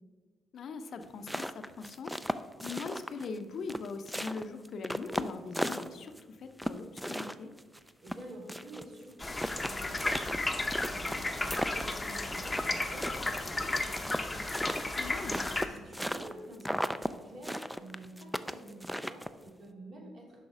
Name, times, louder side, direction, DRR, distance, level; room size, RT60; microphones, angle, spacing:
voice 1, 0.5-7.5 15.0-15.4, left 4 dB, 60° left, 8 dB, 0.6 m, -41 dB
sound 1, 1.0-3.4 3.7-6.2 6.6-8.8 9.1-9.2 9.4-12.7 13.0-16.3 16.6-17.1 17.4-19.5, equal, ahead, 0.3 m, -36 dB
voice 2, 7.7-20.4, right 1 dB, 55° right, -2 dB, 2.3 m, -49 dB
sound 2, 9.2-15.7, left 2 dB, 15° left, 0.7 m, -34 dB
6.3 x 5.6 x 4.9 m, 1.5 s
cardioid pair, 90°, 0 cm